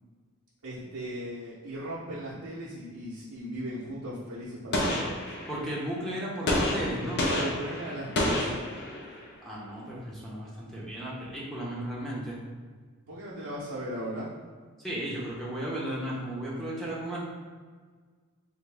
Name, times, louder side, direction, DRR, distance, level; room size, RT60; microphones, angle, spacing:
voice 1, 0.6-5.1 7.2-8.6 13.1-14.3, equal, 70° right, -8 dB, 0.6 m, -37 dB
Gunshot gunfire, 4.7-5.8 6.5-9.2, left 1 dB, 50° left, 0.6 m, -29 dB
voice 2, 5.5-7.2 9.4-12.4 14.8-17.2, right 1 dB, ahead, -6 dB, 0.7 m, -35 dB
3.5 x 2.5 x 3.3 m, 1.6 s
head